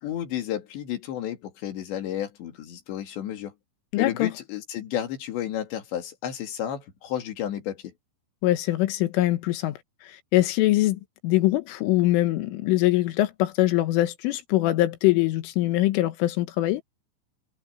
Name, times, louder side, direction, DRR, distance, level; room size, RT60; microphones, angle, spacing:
voice 1, 0.0-3.5 4.0-7.9, left 11 dB, 65° left, 4.5 m, -32 dB
voice 2, 3.9-4.3 8.4-9.8 10.0-16.8, left 16 dB, 85° left, 3.9 m, -23 dB
omnidirectional pair, 5.7 m